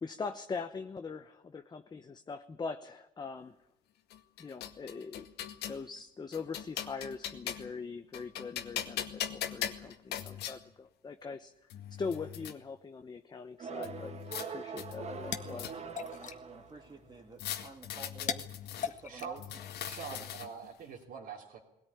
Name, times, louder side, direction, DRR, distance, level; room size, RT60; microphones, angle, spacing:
voice 1, 0.0-3.6 4.4-5.3 5.7-15.7, left 4 dB, 25° left, 7 dB, 1.0 m, -42 dB
sound 1, 4.1-5.8 6.3-7.8 8.1-10.6 11.3-11.4 11.7-12.5 13.8-14.5 14.8-16.0 17.4-18.9 19.4-20.7, left 10 dB, 75° left, 2.0 m, -40 dB
sound 2, 13.6-17.1, right 5 dB, 40° right, 1.8 m, -43 dB
sound 3, 14.8-20.2, left 7 dB, 45° left, 1.7 m, -43 dB
voice 2, 16.2-18.5 18.8-19.4 20.1-20.3, right 3 dB, 25° right, -1 dB, 2.2 m, -50 dB
voice 3, 19.1-19.4 19.8-21.6, right 6 dB, 70° right, -4 dB, 3.4 m, -44 dB
20.0 x 17.5 x 9.9 m, 0.84 s
cardioid pair, 110°, 17 cm